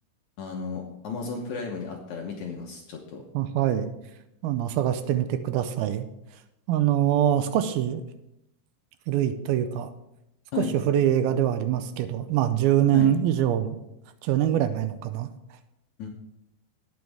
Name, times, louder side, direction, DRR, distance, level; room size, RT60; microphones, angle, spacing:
voice 1, 0.4-3.2 10.5-10.7 12.9-13.1 16.0-16.1, left 5 dB, 65° left, 1 dB, 2.0 m, -34 dB
voice 2, 3.3-3.9 4.4-6.1 6.7-8.0 9.1-9.9 10.6-13.8 14.2-15.3, right 11 dB, 80° right, 10 dB, 2.4 m, -24 dB
18.5 x 6.3 x 3.5 m, 0.85 s
omnidirectional pair, 4.5 m